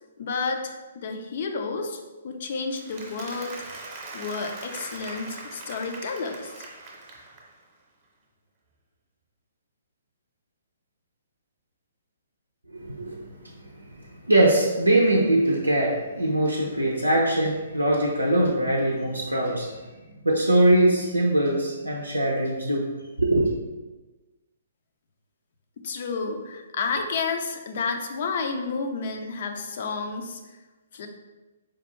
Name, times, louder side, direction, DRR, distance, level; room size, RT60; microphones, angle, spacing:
voice 1, 0.2-3.6 4.1-6.5 25.8-30.4 30.9-31.1, left 4 dB, 50° left, 5 dB, 0.4 m, -31 dB
Applause, 2.6-7.6, right 3 dB, 30° right, 0.8 m, -41 dB
voice 2, 12.7-13.2 14.3-19.8 20.2-22.9 23.2-23.4, right 1 dB, 90° right, -3 dB, 0.5 m, -22 dB
4.4 x 2.4 x 3.0 m, 1.2 s
figure-of-eight pair, 125°, 0 cm